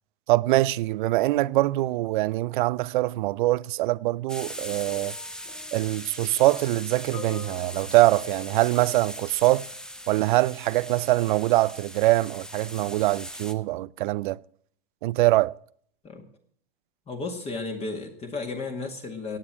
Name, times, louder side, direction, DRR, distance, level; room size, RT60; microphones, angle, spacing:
voice 1, 0.3-5.2 5.7-9.7 10.1-14.4 15.0-15.5, right 18 dB, 55° right, 0.6 m, -23 dB
sound 1, 4.3-13.5, equal, ahead, 0.9 m, -40 dB
sound 2, 4.9-10.0 10.9-11.1, left 6 dB, 65° left, 5.9 m, -47 dB
voice 2, 17.1-19.4, left 3 dB, 20° left, 2.0 m, -33 dB
16.5 x 9.0 x 7.4 m
hypercardioid pair, 125°, 29 cm